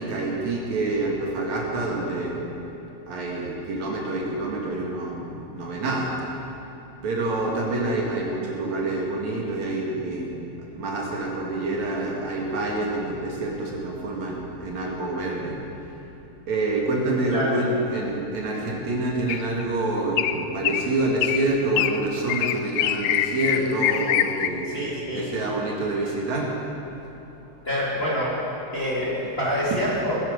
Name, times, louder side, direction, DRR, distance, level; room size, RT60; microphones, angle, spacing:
voice 1, 0.0-2.5 3.1-6.2 7.0-10.4 10.7-15.6 16.5-26.5 29.2-29.3, right 2 dB, 65° right, -2 dB, 3.2 m, -27 dB
sound 1, 19.3-19.6 20.2-20.4 20.6-20.9 21.2-21.4 21.8-22.0 22.3-24.5, left 12 dB, 80° left, 1.8 m, -24 dB
voice 2, 24.6-25.2 27.6-28.3 28.7-30.2, equal, 20° left, -7 dB, 2.6 m, -26 dB
20.5 x 10.5 x 6.5 m, 2.9 s
omnidirectional pair, 3.6 m